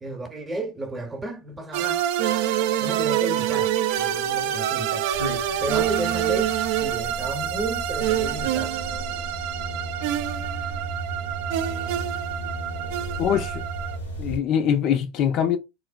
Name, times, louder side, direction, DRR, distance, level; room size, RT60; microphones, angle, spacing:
voice 1, 0.0-2.0 2.8-5.1 5.6-8.8, right 1 dB, 20° right, 0.8 m, -33 dB
sound 1, 1.7-14.0, right 11 dB, 60° right, 0.3 m, -26 dB
sound 2, 5.1-14.4, right 1 dB, 85° left, 1.0 m, -35 dB
voice 2, 13.2-13.7 14.2-15.6, left 9 dB, 50° left, 0.4 m, -23 dB
3.1 x 2.1 x 2.4 m
figure-of-eight pair, 80°, 0 cm